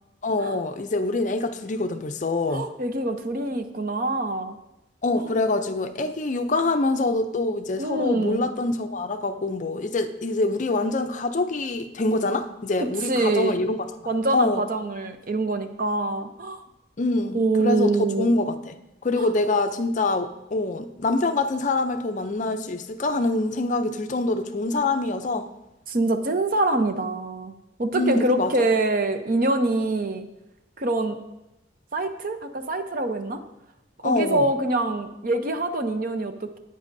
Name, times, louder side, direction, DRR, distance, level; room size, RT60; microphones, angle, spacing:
voice 1, 0.2-2.7 5.0-13.8 14.3-14.6 17.0-18.8 19.0-25.5 27.9-28.7 34.0-34.5, left 2 dB, 40° left, 9 dB, 0.5 m, -25 dB
voice 2, 2.5-4.6 5.2-5.3 7.8-8.5 12.8-13.6 14.1-16.6 17.3-18.3 19.2-19.3 25.9-27.5 27.8-30.3 30.8-31.2 31.9-33.4 34.0-36.6, right 2 dB, 45° right, 8 dB, 0.7 m, -25 dB
15.0 x 8.9 x 2.7 m, 0.93 s
head